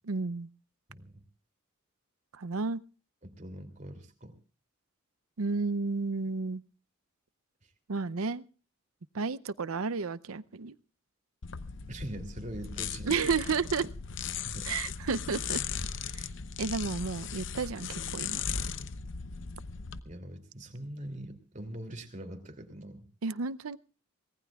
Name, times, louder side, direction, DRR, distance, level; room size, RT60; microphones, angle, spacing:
voice 1, 0.1-0.5 2.3-2.8 5.4-6.6 7.9-8.4 9.1-10.8 13.1-13.9 14.7-15.6 16.1-16.2 16.6-18.4 23.2-23.8, right 4 dB, 85° right, 15 dB, 0.7 m, -32 dB
voice 2, 0.9-1.2 3.2-4.4 7.6-7.7 11.9-13.3 14.3-14.7 20.0-23.1, right 1 dB, 35° right, 6 dB, 2.7 m, -43 dB
sound 1, 11.4-20.0, left 6 dB, 60° left, 0.8 m, -37 dB
24.5 x 19.0 x 2.4 m, 0.37 s
head